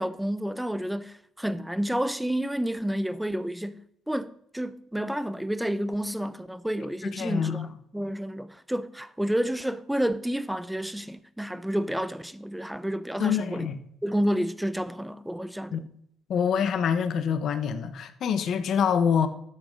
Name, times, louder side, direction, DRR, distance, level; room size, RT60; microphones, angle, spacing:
voice 1, 0.0-7.7 7.9-13.7 14.0-15.8, equal, 5° right, 0.7 m, -30 dB
voice 2, 7.0-7.7 13.2-13.8 15.7-15.8 16.3-19.3, left 7 dB, 60° left, 1.2 m, -26 dB
12.5 x 8.3 x 3.9 m
supercardioid pair, 75°, 0 cm